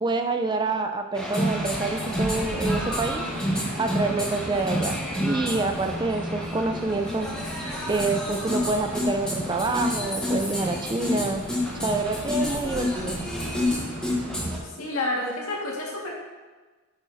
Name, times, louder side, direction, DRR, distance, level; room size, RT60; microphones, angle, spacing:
voice 1, 0.0-7.3 7.6-11.4 11.8-13.2, right 3 dB, 20° right, 5 dB, 0.4 m, -27 dB
sound 1, 1.1-14.6, left 1 dB, 5° left, 0.9 m, -29 dB
sound 2, 1.4-14.6, equal, 85° right, 1.4 m, -38 dB
sound 3, 2.1-5.5 5.8-8.1 8.3-8.7 9.0-10.9 11.2-11.3 11.7-12.1 12.4-12.5 14.7-14.8, equal, 40° left, 1.1 m, -41 dB
voice 2, 14.6-16.1, left 2 dB, 70° left, -4 dB, 1.8 m, -29 dB
8.4 x 6.0 x 2.7 m, 1.3 s
head